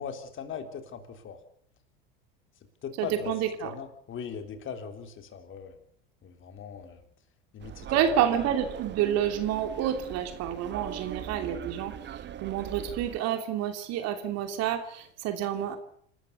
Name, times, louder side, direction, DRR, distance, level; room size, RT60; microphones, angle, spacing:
voice 1, 0.0-1.4 2.8-3.3 3.6-5.8 6.2-7.0 7.5-8.0, left 7 dB, 40° left, 7 dB, 3.7 m, -39 dB
voice 2, 3.0-3.7 7.9-15.8, right 10 dB, 55° right, 7 dB, 3.0 m, -29 dB
sound 1, 7.6-13.2, right 10 dB, 35° right, 1.4 m, -40 dB
27.0 x 13.5 x 8.3 m, 0.62 s
hypercardioid pair, 85°, 30 cm